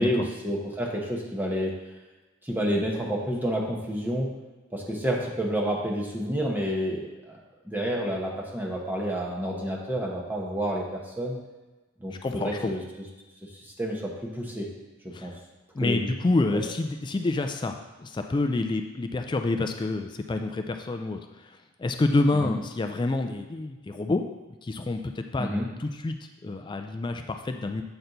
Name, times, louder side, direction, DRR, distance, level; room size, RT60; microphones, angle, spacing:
voice 1, 0.0-1.7 2.4-4.3 4.7-7.4 7.6-11.4 12.0-12.1 12.4-12.8 13.6-14.7 15.2-15.3 15.8-16.1 22.4-22.5 25.4-25.6, equal, 10° right, -2 dB, 0.9 m, -29 dB
voice 2, 12.1-12.7 15.1-15.3 15.7-24.2 24.6-27.8, left 2 dB, 25° left, 6 dB, 0.3 m, -28 dB
7.8 x 4.3 x 4.0 m, 1.1 s
head